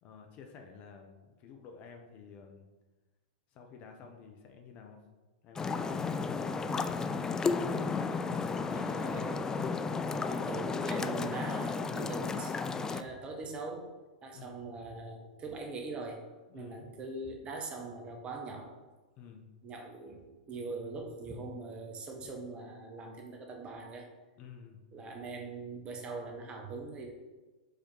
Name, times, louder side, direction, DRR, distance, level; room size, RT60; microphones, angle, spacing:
voice 1, 0.0-2.7 3.5-5.0 5.4-7.0 7.8-8.7 14.3-14.6 16.5-16.9 19.2-19.5 24.4-24.8, left 6 dB, 35° left, 3 dB, 0.9 m, -52 dB
sound 1, 5.5-13.0, left 4 dB, 15° left, 0.3 m, -33 dB
voice 2, 8.7-9.4 10.3-12.6 12.9-13.9 14.2-16.2 16.5-18.7 19.6-24.1 24.9-27.1, right 3 dB, 25° right, 2 dB, 1.1 m, -42 dB
5.0 x 4.4 x 4.5 m, 1.2 s
figure-of-eight pair, 105°, 4 cm